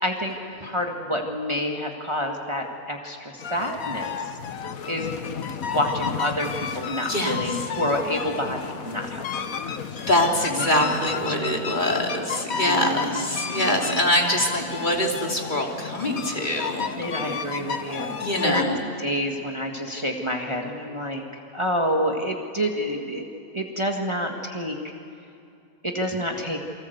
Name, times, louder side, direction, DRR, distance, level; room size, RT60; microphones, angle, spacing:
voice 1, 0.0-4.1 4.9-9.7 10.4-11.0 11.9-12.0 12.6-13.3 13.5-14.0 16.9-18.2 18.4-18.7 19.0-21.2 21.5-23.3 23.5-24.8 25.8-26.6, equal, 20° right, 1 dB, 2.0 m, -28 dB
sound 1, 3.4-18.6, left 6 dB, 75° left, 1.5 m, -32 dB
voice 2, 7.0-7.4 9.9-16.9 18.2-18.8, left 1 dB, 35° left, 0 dB, 3.0 m, -24 dB
28.5 x 24.0 x 8.1 m, 2.6 s
omnidirectional pair, 1.5 m